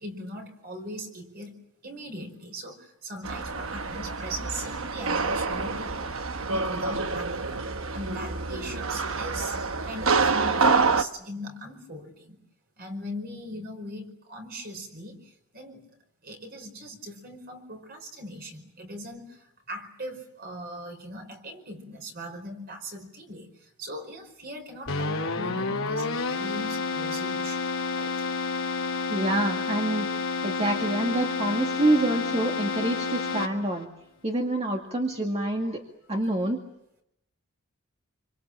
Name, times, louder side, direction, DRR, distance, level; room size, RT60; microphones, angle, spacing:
voice 1, 0.0-1.5 1.8-6.0 6.5-7.4 7.9-9.6 9.8-12.4 12.8-15.9 16.2-27.7 27.9-28.1, equal, 45° right, 4 dB, 5.0 m, -40 dB
sound 1, 3.2-11.0, right 4 dB, 65° right, 1.1 m, -27 dB
Keyboard (musical), 24.9-33.8, left 4 dB, 70° left, 2.9 m, -30 dB
voice 2, 29.1-30.1 30.4-33.9 34.2-35.8 36.1-36.6, right 1 dB, 30° right, 1 dB, 2.1 m, -26 dB
27.0 x 25.5 x 7.6 m, 0.82 s
head